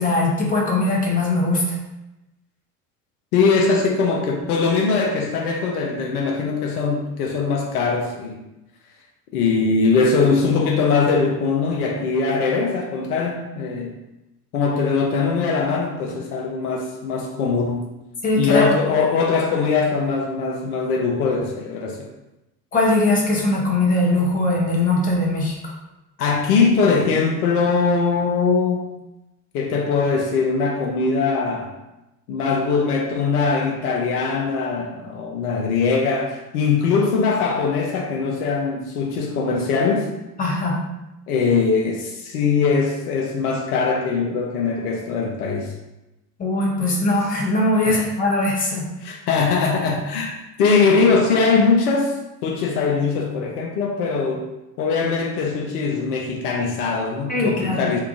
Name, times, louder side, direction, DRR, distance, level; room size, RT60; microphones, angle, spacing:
voice 1, 0.0-1.8 18.2-18.7 22.7-25.7 40.4-40.8 46.4-48.9 57.3-57.8, left 2 dB, 15° left, -2 dB, 0.8 m, -20 dB
voice 2, 3.3-8.4 9.3-14.0 14.5-17.9 18.4-22.0 26.2-28.9 29.5-31.7 32.3-40.1 41.3-45.7 47.8-48.0 49.0-52.1 52.4-54.5 54.8-58.0, left 4 dB, 65° left, 0 dB, 0.6 m, -21 dB
2.8 x 2.3 x 3.6 m, 0.96 s
figure-of-eight pair, 65°, 49 cm